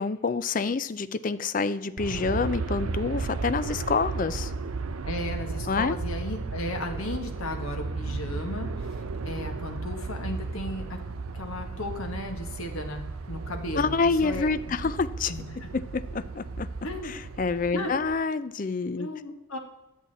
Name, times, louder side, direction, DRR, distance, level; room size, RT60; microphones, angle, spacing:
voice 1, 0.0-4.5 5.7-6.0 13.8-15.3 15.7-16.7 17.0-19.1, left 4 dB, 40° left, 13 dB, 0.4 m, -27 dB
Aircraft, 2.0-18.1, right 3 dB, 85° right, 0.6 m, -34 dB
voice 2, 5.0-11.0 11.3-13.0 13.3-14.7 15.3-15.7 16.8-17.1 17.7-17.9 19.0-19.6, left 1 dB, 85° left, 4 dB, 1.6 m, -35 dB
10.5 x 7.3 x 4.2 m, 1.0 s
head